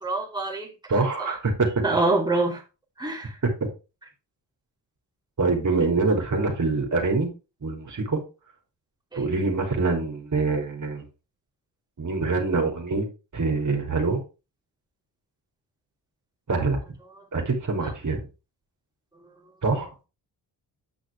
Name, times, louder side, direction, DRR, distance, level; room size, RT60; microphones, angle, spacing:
voice 1, 0.0-0.7 1.2-1.4 1.8-2.6 3.0-3.4 9.1-9.3 17.2-17.3 17.8-17.9, right 2 dB, 10° right, 2.8 m, -26 dB
voice 2, 0.9-1.8 3.4-3.5 5.4-7.3 7.6-8.2 9.1-11.0 12.0-13.1 13.3-14.2 16.5-16.8 17.3-18.2 19.6-19.9, right 3 dB, 45° right, 3.3 m, -24 dB
8.8 x 6.5 x 3.4 m
cardioid pair, 75°, 42 cm